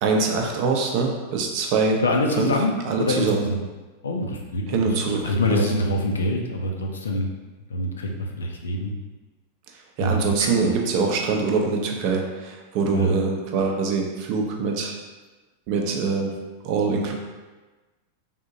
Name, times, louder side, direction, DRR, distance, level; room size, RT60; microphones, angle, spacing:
voice 1, 0.0-2.0 2.4-2.5 2.9-3.4 4.7-5.2 5.5-5.8 10.0-14.9 15.7-16.3 16.6-17.1, right 4 dB, 45° right, 1 dB, 0.5 m, -23 dB
voice 2, 2.0-3.6 4.0-7.3 7.7-8.9 10.0-10.7 12.9-13.2, left 1 dB, 70° left, 2 dB, 0.4 m, -25 dB
3.4 x 2.7 x 2.6 m, 1.2 s
figure-of-eight pair, 90°, 0 cm